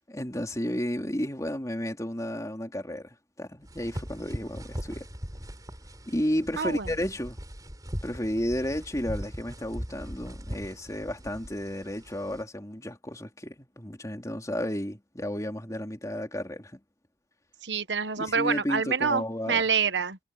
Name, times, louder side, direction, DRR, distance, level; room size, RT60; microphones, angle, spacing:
voice 1, 0.1-5.1 6.1-7.4 8.0-16.8 18.2-19.6, equal, 20° left, 3.2 m, -32 dB
sound 1, 3.6-12.4, equal, 20° right, 5.0 m, -40 dB
voice 2, 6.6-6.9 17.6-20.2, right 5 dB, 75° right, 1.2 m, -27 dB
head